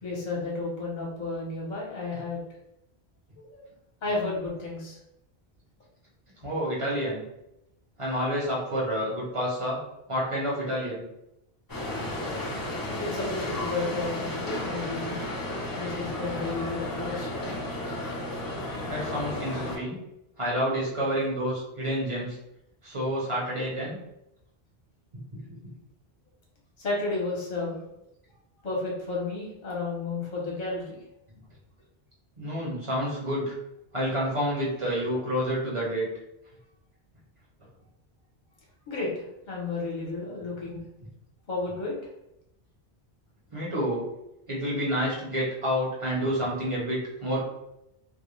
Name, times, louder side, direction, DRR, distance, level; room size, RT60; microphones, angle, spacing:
voice 1, 0.0-2.4 3.4-3.6 4.0-5.0 13.0-15.3 15.8-17.5 26.8-27.8 28.6-31.0 38.9-40.8 41.5-41.9, left 3 dB, 50° left, -4 dB, 0.9 m, -32 dB
voice 2, 6.4-7.2 8.0-9.8 10.1-11.0 18.9-20.0 20.4-22.4 22.8-24.0 25.3-25.6 32.4-33.5 33.9-36.1 43.5-44.0 44.5-47.4, equal, 35° right, -5 dB, 0.7 m, -29 dB
sound 1, 11.7-19.8, left 1 dB, 30° left, 0.4 m, -33 dB
2.4 x 2.1 x 3.0 m, 0.85 s
omnidirectional pair, 1.1 m